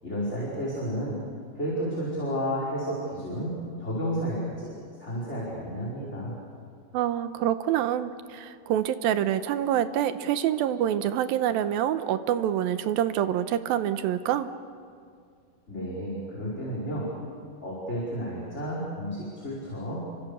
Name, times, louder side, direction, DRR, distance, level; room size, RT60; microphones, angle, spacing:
voice 1, 0.0-1.2 1.5-3.5 3.8-6.4 15.7-17.1 17.6-20.0, equal, 15° left, -6 dB, 4.9 m, -32 dB
voice 2, 6.9-14.5, right 11 dB, 75° right, 11 dB, 2.5 m, -26 dB
30.0 x 24.5 x 6.9 m, 2.3 s
omnidirectional pair, 4.5 m